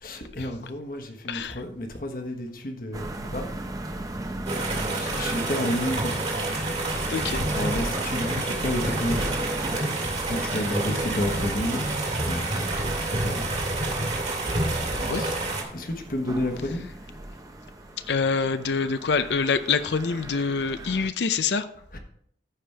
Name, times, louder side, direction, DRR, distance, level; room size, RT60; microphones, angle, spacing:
voice 1, 0.0-3.5 4.5-6.1 7.5-9.4 9.8-11.8 12.3-12.8 13.2-13.5 15.2-15.3 15.7-16.9 21.9-22.0, left 1 dB, 50° left, 5 dB, 1.3 m, -31 dB
voice 2, 1.3-1.6 7.1-7.4 14.0-14.1 15.0-15.3 18.1-21.7, left 5 dB, 80° left, 11 dB, 0.5 m, -26 dB
sound 1, 2.9-21.1, right 1 dB, 20° right, 0.7 m, -37 dB
sound 2, 4.5-15.6, right 2 dB, 40° right, 2.0 m, -28 dB
14.0 x 5.1 x 3.4 m, 0.66 s
head